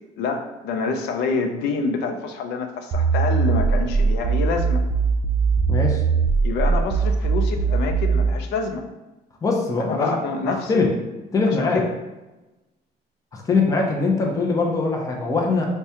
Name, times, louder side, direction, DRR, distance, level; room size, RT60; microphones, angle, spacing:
voice 1, 0.2-4.8 6.4-8.9 9.8-10.8 11.5-11.9, left 4 dB, 80° left, 6 dB, 0.5 m, -27 dB
sound 1, 2.9-8.4, right 5 dB, 40° right, 0.4 m, -20 dB
voice 2, 5.7-6.0 9.4-10.2 10.5-10.9 11.3-11.8 13.3-15.7, left 3 dB, 20° left, 0 dB, 0.5 m, -22 dB
4.5 x 2.2 x 2.8 m, 1.1 s
cardioid pair, 110°, 17 cm